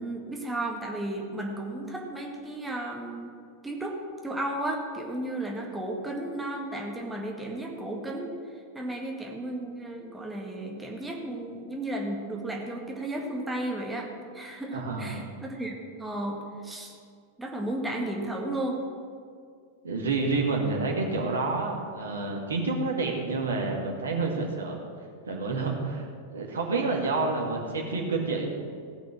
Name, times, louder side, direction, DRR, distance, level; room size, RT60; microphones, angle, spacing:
voice 1, 0.0-3.3 3.6-8.3 8.7-14.1 14.3-17.0 17.4-18.8, right 1 dB, 10° right, -1 dB, 1.8 m, -34 dB
voice 2, 14.7-15.2 19.8-24.8 25.3-26.1 26.3-28.5, right 3 dB, 70° right, 1 dB, 2.0 m, -29 dB
16.5 x 6.2 x 7.4 m, 2.3 s
figure-of-eight pair, 90°, 0 cm